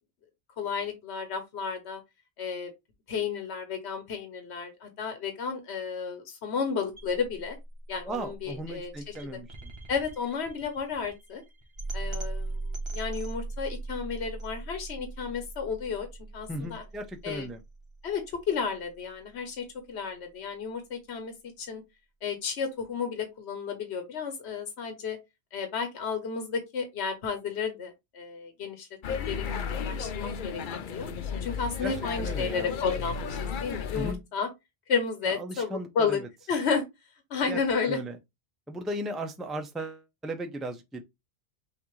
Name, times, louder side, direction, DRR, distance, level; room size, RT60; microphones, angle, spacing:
voice 1, 0.6-2.0 2.4-2.7 3.1-7.6 7.9-9.1 9.9-11.4 11.9-16.1 16.3-16.8 17.2-17.5 18.0-21.8 22.2-25.2 25.5-29.4 29.7-31.1 31.4-34.5 34.9-36.2 36.5-36.8 37.3-38.0, left 5 dB, 85° left, 1.2 m, -32 dB
sound 1, 6.9-19.0, right 2 dB, 30° right, 1.1 m, -39 dB
voice 2, 8.1-9.7 16.5-17.6 31.8-32.7 33.9-34.2 35.2-36.3 37.5-38.2 38.7-41.0, right 1 dB, ahead, 0.5 m, -36 dB
sound 2, 29.0-34.1, left 6 dB, 55° left, 0.7 m, -33 dB
5.8 x 2.7 x 3.1 m
omnidirectional pair, 1.1 m